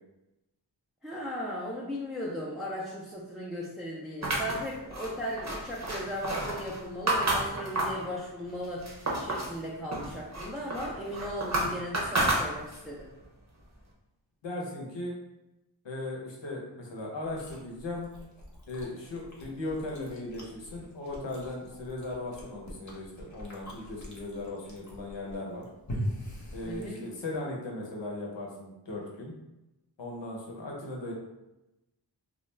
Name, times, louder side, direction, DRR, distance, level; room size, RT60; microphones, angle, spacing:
voice 1, 1.0-8.8 9.2-13.1 26.6-27.1, equal, ahead, -6 dB, 0.4 m, -37 dB
sound 1, 4.2-8.1 8.5-9.6 9.9-12.9, right 1 dB, 40° right, 0.7 m, -31 dB
voice 2, 14.4-15.2 15.8-18.1 18.7-25.6 26.5-29.3 30.0-31.1, left 2 dB, 80° left, -2 dB, 0.8 m, -37 dB
Chewing mastication, 17.2-27.4, equal, 40° left, 0.8 m, -43 dB
2.3 x 2.2 x 3.2 m, 0.95 s
wide cardioid pair, 75°, 44 cm